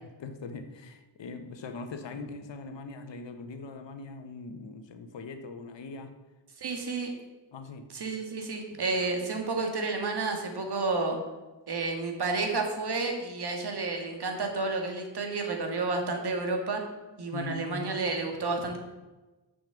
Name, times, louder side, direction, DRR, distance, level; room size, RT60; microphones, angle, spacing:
voice 1, 0.0-6.1 7.5-7.9 17.3-17.9, left 3 dB, 75° left, 7 dB, 1.1 m, -41 dB
voice 2, 6.6-7.1 7.9-11.2 11.7-16.8 17.2-18.8, right 3 dB, 60° right, 3 dB, 1.9 m, -31 dB
7.1 x 6.7 x 7.0 m, 1.2 s
wide cardioid pair, 100°, 44 cm